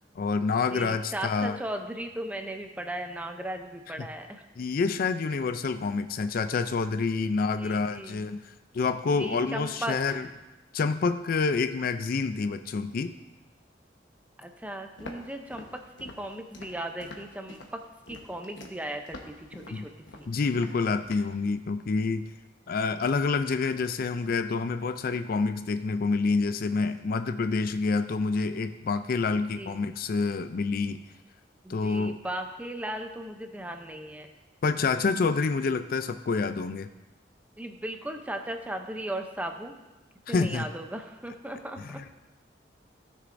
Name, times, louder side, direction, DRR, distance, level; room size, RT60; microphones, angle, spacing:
voice 1, 0.2-1.6 4.0-4.1 4.6-10.3 10.7-13.1 19.7-19.8 20.3-22.3 22.7-31.0 31.7-32.2 34.6-36.9 40.3-40.7 41.8-42.0, left 4 dB, 55° left, 10 dB, 0.4 m, -28 dB
voice 2, 0.7-4.4 7.3-8.2 9.2-10.3 14.4-17.8 18.1-19.9 20.2-20.3 29.4-29.8 31.6-34.3 37.6-39.8 40.3-42.1, right 1 dB, 10° right, 5 dB, 0.6 m, -37 dB
Walk footsteps, 15.0-21.4, left 2 dB, 85° left, 1.1 m, -46 dB
15.5 x 6.5 x 2.6 m, 1.1 s
head